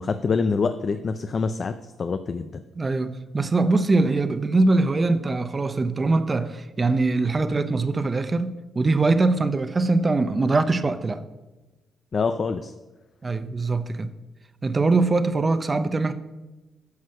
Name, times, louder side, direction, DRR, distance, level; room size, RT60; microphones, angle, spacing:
voice 1, 0.0-1.7 2.0-2.6 12.1-12.7, left 4 dB, 45° left, 0.5 m, -25 dB
voice 2, 2.7-11.2 13.2-14.1 14.6-16.1, right 3 dB, 25° right, 0.8 m, -22 dB
9.5 x 6.3 x 6.4 m
cardioid pair, 90°, 0 cm